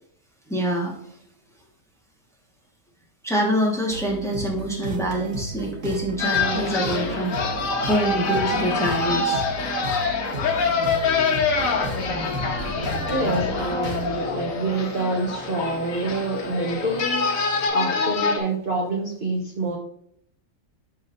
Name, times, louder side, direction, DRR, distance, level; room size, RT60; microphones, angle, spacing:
voice 1, 0.5-0.9 3.2-7.5 7.9-9.4 17.8-17.9, equal, ahead, -1 dB, 1.3 m, -25 dB
Progressive element - electronic track, 3.9-14.2, right 2 dB, 65° right, 1.7 m, -34 dB
sound 1, 6.2-18.4, left 4 dB, 70° left, 1.4 m, -25 dB
Organ, 10.3-17.7, left 3 dB, 25° left, 0.4 m, -37 dB
voice 2, 13.1-17.3 17.7-19.8, right 2 dB, 45° right, -1 dB, 1.0 m, -27 dB
11.5 x 4.1 x 2.6 m, 0.70 s
omnidirectional pair, 1.5 m